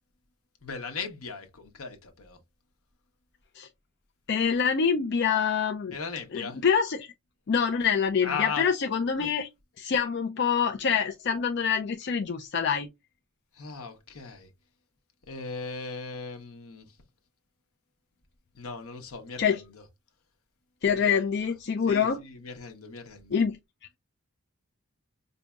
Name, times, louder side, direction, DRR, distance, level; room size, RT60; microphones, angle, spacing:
voice 1, 0.6-2.4 5.9-6.6 8.2-8.6 13.5-14.5 15.3-17.0 18.5-19.8 20.9-21.5 21.9-23.4, left 5 dB, 80° left, 1.0 m, -38 dB
voice 2, 4.3-6.0 6.3-7.1 7.5-9.5 9.8-12.9 19.4-19.6 20.8-22.2 23.3-23.6, left 6 dB, 50° left, 0.4 m, -26 dB
5.1 x 2.7 x 2.3 m
head